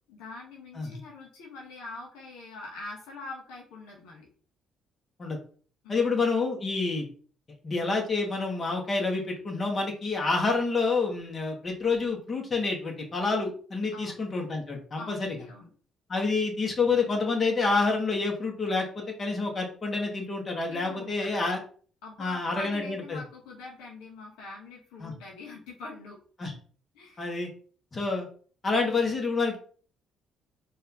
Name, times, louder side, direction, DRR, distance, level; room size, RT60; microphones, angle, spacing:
voice 1, 0.1-4.3 5.8-6.3 13.9-14.2 15.0-15.7 20.7-21.3 22.0-26.2 26.9-27.3, left 3 dB, 80° left, -2 dB, 1.0 m, -43 dB
voice 2, 5.9-7.1 7.6-15.4 16.1-21.6 22.2-23.2 25.0-25.1 26.4-26.5 27.2-27.5 27.9-28.3 28.6-29.6, left 3 dB, 40° left, 0 dB, 1.7 m, -28 dB
4.3 x 2.9 x 3.5 m, 0.43 s
hypercardioid pair, 55°, 0 cm